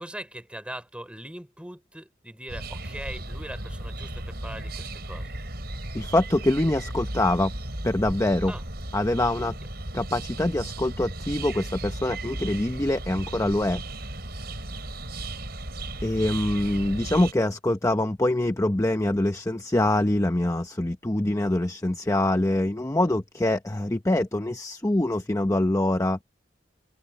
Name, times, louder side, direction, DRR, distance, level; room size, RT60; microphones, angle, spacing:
voice 1, 0.0-5.4 8.5-8.6, right 1 dB, 5° right, 4.1 m, -40 dB
sound 1, 2.5-17.3, right 1 dB, 60° right, 6.3 m, -35 dB
voice 2, 5.9-7.5 7.8-8.5 8.9-9.6 9.9-13.8 16.0-26.2, left 1 dB, 15° left, 0.7 m, -24 dB
head